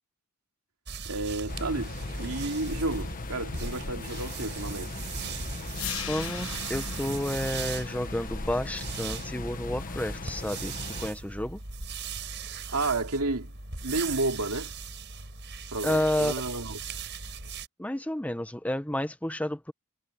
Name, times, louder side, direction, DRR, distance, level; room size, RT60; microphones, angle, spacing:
sound 1, 0.9-17.7, right 5 dB, 55° right, 6.5 m, -39 dB
voice 1, 1.0-5.0 12.7-13.5 13.8-14.7 15.7-16.8, right 2 dB, 75° right, 2.9 m, -31 dB
sound 2, 1.5-11.1, left 2 dB, 40° left, 1.3 m, -38 dB
sound 3, 5.7-11.7, left 8 dB, 65° left, 1.3 m, -42 dB
voice 2, 6.1-11.6 15.8-16.3 17.8-19.7, left 1 dB, 5° left, 1.0 m, -31 dB
head